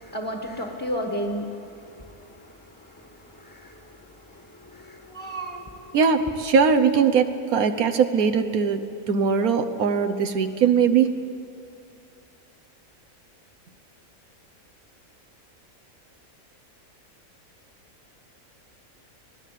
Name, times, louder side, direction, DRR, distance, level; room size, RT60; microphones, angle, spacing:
voice 1, 0.0-6.0, equal, 15° left, 2 dB, 1.7 m, -35 dB
voice 2, 5.9-11.2, right 6 dB, 85° right, 7 dB, 1.5 m, -21 dB
26.5 x 17.5 x 8.4 m, 2.4 s
omnidirectional pair, 1.5 m